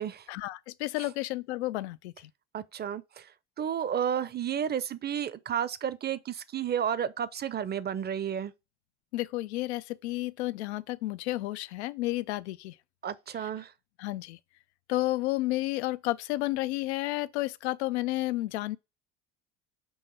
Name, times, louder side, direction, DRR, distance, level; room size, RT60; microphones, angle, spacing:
voice 1, 0.3-2.3 9.1-12.7 13.4-13.5 14.0-14.4 14.9-18.8, left 18 dB, 80° left, 0.5 m, -31 dB
voice 2, 2.5-3.3 3.6-8.5 13.0-13.7, right 8 dB, 30° right, 0.6 m, -32 dB
7.1 x 2.8 x 5.4 m
hypercardioid pair, 70°, 33 cm